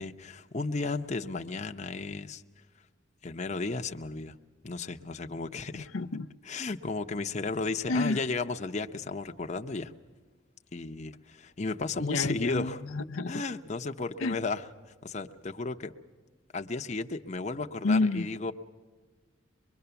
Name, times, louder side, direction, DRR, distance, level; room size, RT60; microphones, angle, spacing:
voice 1, 0.0-2.4 3.2-4.4 4.6-5.9 6.4-9.9 10.7-12.8 13.3-15.9 16.5-18.5, left 3 dB, 35° left, 6 dB, 0.8 m, -34 dB
voice 2, 5.7-6.3 7.9-8.2 12.0-13.4 14.2-14.4 17.8-18.3, left 3 dB, 75° left, 8 dB, 0.6 m, -29 dB
24.5 x 22.0 x 7.0 m, 1.4 s
head